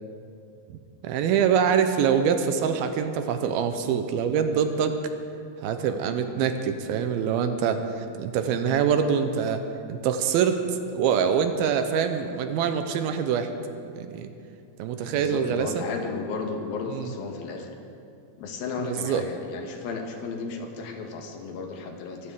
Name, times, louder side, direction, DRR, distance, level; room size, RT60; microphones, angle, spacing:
voice 1, 1.0-5.0 5.6-7.8 8.2-9.6 9.9-10.6 10.9-13.5 14.0-14.3 14.8-15.8 16.9-17.1 18.8-19.3, right 7 dB, 80° right, 7 dB, 2.6 m, -24 dB
voice 2, 15.0-17.7 18.4-22.3, left 4 dB, 70° left, 3 dB, 2.9 m, -34 dB
23.0 x 14.0 x 3.7 m, 2.5 s
omnidirectional pair, 4.5 m